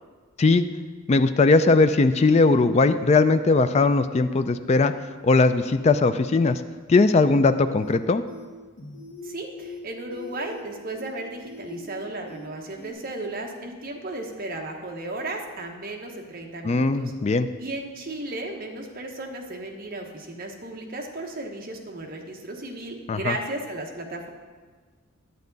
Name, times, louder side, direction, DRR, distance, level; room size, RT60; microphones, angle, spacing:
voice 1, 1.1-4.9 5.2-6.6 6.9-8.2 16.6-17.5 23.1-23.3, left 3 dB, 30° left, 10 dB, 0.3 m, -19 dB
sound 1, 7.8-8.0 8.3-8.5 8.8-9.3 9.6-9.8 10.1-10.6 10.9-11.1 11.4-12.0 12.3-12.5 12.8-12.9, left 2 dB, 55° left, 1.7 m, -41 dB
voice 2, 9.2-17.1 17.6-24.3, right 2 dB, 45° right, 2 dB, 1.1 m, -35 dB
9.5 x 8.3 x 4.0 m, 1.5 s
head